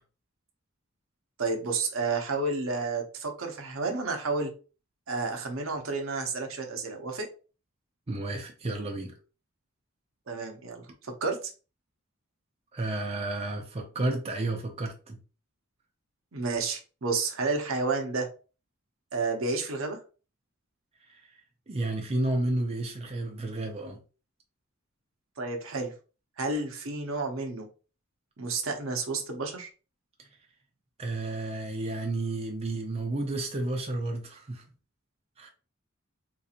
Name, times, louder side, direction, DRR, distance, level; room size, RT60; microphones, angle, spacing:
voice 1, 1.4-4.5 5.1-7.3 10.3-11.5 16.3-18.3 19.1-20.0 25.4-25.9 26.4-27.7 28.4-29.7, right 3 dB, 70° right, 0.8 m, -31 dB
voice 2, 8.1-9.2 12.7-15.2 21.0-21.4 21.7-24.0 30.2-30.3 31.0-34.6 35.4-35.5, right 2 dB, 30° right, 0.6 m, -32 dB
3.8 x 2.9 x 2.4 m
head